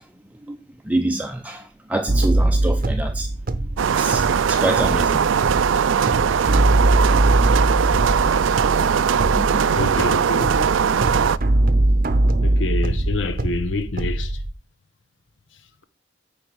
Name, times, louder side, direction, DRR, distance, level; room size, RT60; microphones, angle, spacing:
voice 1, 0.9-1.6 1.9-3.3 3.9-5.2 5.8-5.9 6.4-6.5 9.3-9.6, right 1 dB, 10° right, 0.5 m, -26 dB
sound 1, 2.1-14.5, right 1 dB, 50° right, 0.7 m, -22 dB
sound 2, 3.8-11.4, right 7 dB, 85° right, 0.4 m, -20 dB
voice 2, 9.7-10.7 12.4-14.4, left 3 dB, 80° left, 1.0 m, -27 dB
8.8 x 5.3 x 4.6 m
head